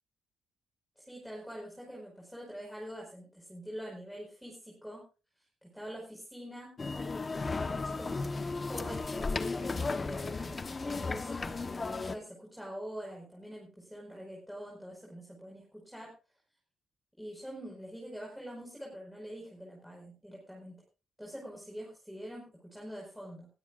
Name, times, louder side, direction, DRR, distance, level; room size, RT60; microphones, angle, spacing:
voice 1, 1.0-5.0 5.6-6.7 7.3-16.1 17.2-20.8 21.2-23.5, equal, ahead, -2 dB, 4.9 m, -45 dB
sound 1, 6.8-12.2, left 3 dB, 30° left, 1.0 m, -35 dB
19.5 x 13.0 x 2.5 m, 0.33 s
cardioid pair, 90°, 0 cm